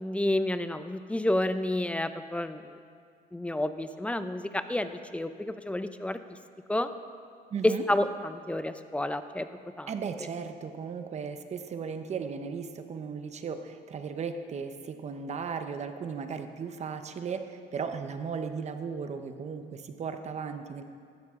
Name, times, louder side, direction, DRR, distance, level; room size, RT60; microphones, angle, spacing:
voice 1, 0.0-2.8 3.3-6.4 6.7-6.9 7.6-9.5 9.8-9.9, left 1 dB, 5° left, 10 dB, 0.6 m, -30 dB
voice 2, 7.5-7.8 9.9-20.8, right 6 dB, 40° right, 8 dB, 0.9 m, -36 dB
15.5 x 12.0 x 3.7 m, 2.1 s
cardioid pair, 110°, 17 cm